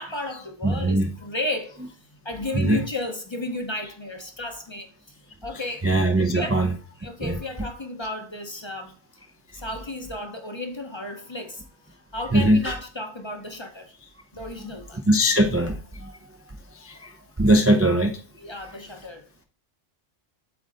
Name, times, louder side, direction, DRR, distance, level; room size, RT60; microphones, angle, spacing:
voice 1, 0.0-1.7 2.2-5.9 6.2-6.6 7.0-8.9 9.5-13.9 14.3-15.0 18.4-19.3, left 2 dB, 25° left, 0.8 m, -33 dB
voice 2, 0.6-1.1 2.5-2.8 5.8-6.7 7.2-7.4 12.3-12.7 15.1-16.1 16.7-17.1 17.4-18.1, right 1 dB, 20° right, 0.4 m, -20 dB
7.9 x 3.8 x 3.8 m
omnidirectional pair, 1.2 m